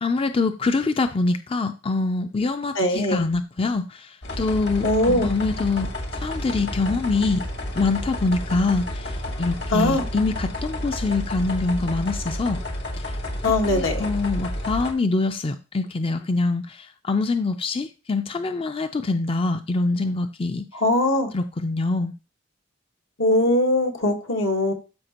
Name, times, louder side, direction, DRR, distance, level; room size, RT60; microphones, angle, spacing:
voice 1, 0.0-7.4 7.8-12.6 13.0-13.2 13.7-20.7 21.3-22.1, left 3 dB, 30° left, 8 dB, 0.4 m, -25 dB
voice 2, 2.7-3.2 4.8-5.3 9.7-10.0 13.4-14.0 20.7-21.3 23.2-24.7, left 1 dB, 80° left, 2 dB, 1.6 m, -21 dB
sound 1, 4.2-14.9, left 1 dB, 60° left, 1.7 m, -30 dB
13.0 x 4.9 x 2.9 m, 0.31 s
head